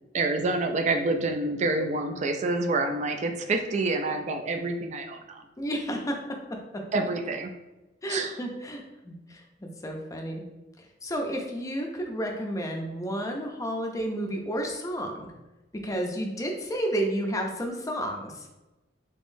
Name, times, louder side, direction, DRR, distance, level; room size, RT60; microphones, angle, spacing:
voice 1, 0.1-5.4 6.9-7.5 8.1-8.4, right 2 dB, 40° right, 5 dB, 0.3 m, -27 dB
voice 2, 5.6-6.1 8.0-10.4 10.8-15.3 15.8-18.5, right 1 dB, 20° left, 2 dB, 0.5 m, -31 dB
3.6 x 3.0 x 2.6 m, 1.0 s
head